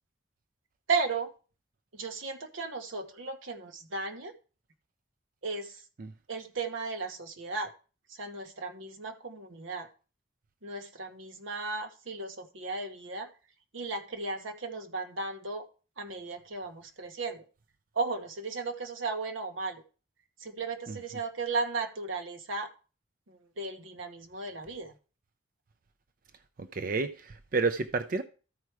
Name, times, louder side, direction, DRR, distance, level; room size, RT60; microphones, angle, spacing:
voice 1, 0.9-1.3 1.9-4.3 5.4-5.7 6.3-7.7 8.2-9.9 10.6-13.3 13.7-15.6 16.0-17.4 17.9-19.8 20.4-22.7 23.6-24.9, right 3 dB, 85° right, 1.2 m, -35 dB
voice 2, 26.7-28.2, right 4 dB, 45° right, 0.5 m, -30 dB
13.5 x 4.6 x 4.7 m
head